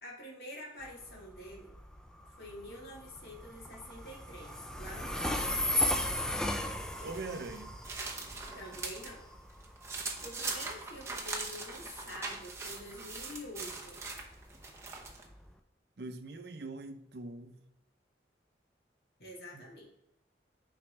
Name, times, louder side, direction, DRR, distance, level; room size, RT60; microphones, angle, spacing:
voice 1, 0.0-1.7 2.4-5.8 8.5-9.2 10.2-14.0 19.2-19.9, left 1 dB, 60° left, 2.0 m, -47 dB
Train, 0.8-15.6, left 1 dB, 5° left, 0.4 m, -37 dB
sound 1, 7.0-9.1 9.5-15.3, right 3 dB, 15° right, 0.8 m, -41 dB
voice 2, 7.0-7.8 16.0-17.6 19.5-19.6, right 3 dB, 65° right, 0.6 m, -42 dB
9.4 x 4.0 x 3.3 m
head